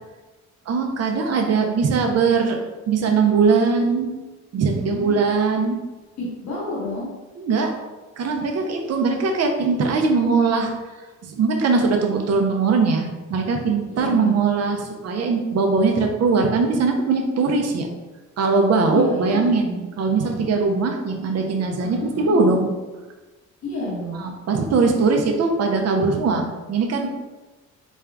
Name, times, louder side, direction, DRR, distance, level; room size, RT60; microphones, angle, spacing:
voice 1, 0.7-2.6 2.9-4.2 4.5-5.8 7.4-7.7 8.2-10.7 11.2-17.9 18.4-22.7 24.1-27.1, right 4 dB, 55° right, 3 dB, 0.7 m, -20 dB
voice 2, 4.8-5.1 6.2-7.1 10.1-10.3 13.9-14.4 18.9-19.5 21.8-22.4 23.6-24.2, left 2 dB, 65° left, -5 dB, 1.4 m, -30 dB
4.3 x 2.4 x 3.4 m, 1.2 s
cardioid pair, 90°, 30 cm